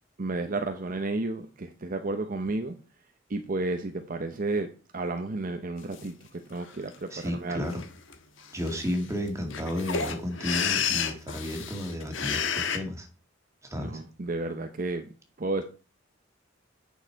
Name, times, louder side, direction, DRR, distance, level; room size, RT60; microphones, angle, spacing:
voice 1, 0.2-2.7 3.3-7.8 13.7-15.1 15.4-15.6, right 2 dB, 45° right, 0.7 m, -32 dB
sound 1, 5.9-6.0 6.5-7.0 7.6-7.9 8.1-8.2 8.4-12.8, left 7 dB, 80° left, 1.2 m, -31 dB
voice 2, 7.1-7.8 8.5-13.1 13.6-14.0, equal, 15° right, 2.1 m, -32 dB
9.1 x 6.5 x 4.6 m
head